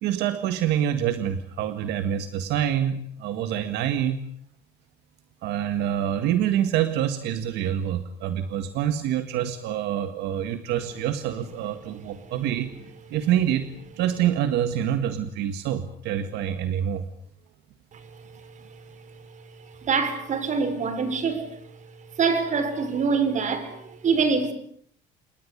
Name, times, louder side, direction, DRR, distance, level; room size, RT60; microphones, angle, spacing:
voice 1, 0.0-4.2 5.4-12.7 13.1-13.7 14.0-17.1, right 10 dB, 85° right, 1.8 m, -26 dB
voice 2, 17.9-21.6 22.1-24.5, right 5 dB, 45° right, 5.2 m, -26 dB
28.0 x 21.0 x 8.4 m
cardioid pair, 110°, 17 cm